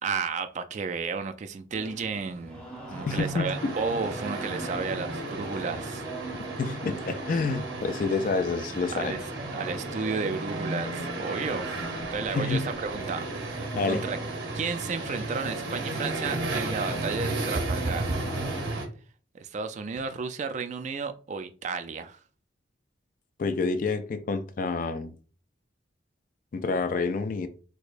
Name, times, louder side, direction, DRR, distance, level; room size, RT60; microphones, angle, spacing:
voice 1, 0.0-6.0 8.9-9.2 9.5-11.7 12.1-13.5 13.9-14.2 14.5-18.1 19.3-22.2, right 5 dB, 40° right, 0.3 m, -33 dB
sound 1, 1.7-18.8, right 2 dB, 5° left, 0.8 m, -41 dB
voice 2, 3.0-3.7 6.6-9.2 12.3-12.7 13.7-14.0 23.4-25.1 26.5-27.5, left 4 dB, 45° left, 0.3 m, -28 dB
sound 2, 3.4-18.9, right 2 dB, 70° right, 0.8 m, -34 dB
4.6 x 2.1 x 2.5 m
head